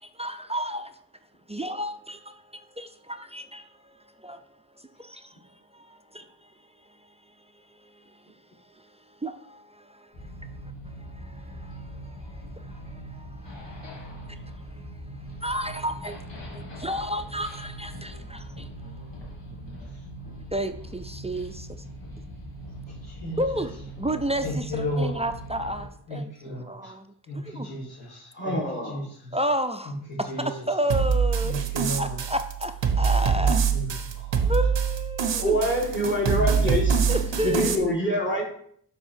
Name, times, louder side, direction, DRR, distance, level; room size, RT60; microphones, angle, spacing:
voice 1, 0.1-1.0 1.5-3.9 4.2-4.4 5.0-5.3 5.7-6.5 7.8-8.1 8.7-8.8 9.2-10.3 10.9-15.0 15.4-18.7 20.5-21.8 23.4-27.1 27.3-27.7 29.3-31.6 32.0-33.6 34.4-35.6 37.1-37.9, equal, 15° right, 0.4 m, -32 dB
sound 1, 10.1-25.9, right 1 dB, 85° left, 1.6 m, -41 dB
voice 2, 22.9-23.4 24.4-25.1 26.1-26.9 27.3-28.6 28.8-29.4 30.1-30.4 31.4-32.2 33.4-34.5 36.3-36.8, equal, 60° left, 2.8 m, -34 dB
voice 3, 28.3-29.0 35.4-37.0 37.4-38.5, equal, 25° left, 1.7 m, -25 dB
sound 2, 30.9-37.7, right 6 dB, 90° right, 0.7 m, -24 dB
6.7 x 3.5 x 4.4 m
cardioid pair, 50°, 42 cm